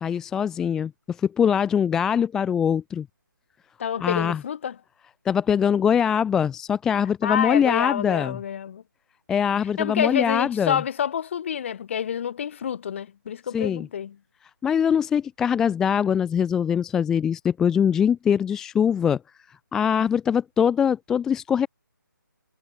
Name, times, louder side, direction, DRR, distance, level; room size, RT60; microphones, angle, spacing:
voice 1, 0.0-3.1 4.0-4.4 5.3-8.4 9.3-10.8 13.5-13.9 14.6-19.2 19.7-21.7, left 8 dB, 5° left, 0.5 m, -22 dB
voice 2, 3.8-4.8 7.2-8.8 9.8-14.2, left 8 dB, 35° left, 7.8 m, -28 dB
figure-of-eight pair, 155°, 11 cm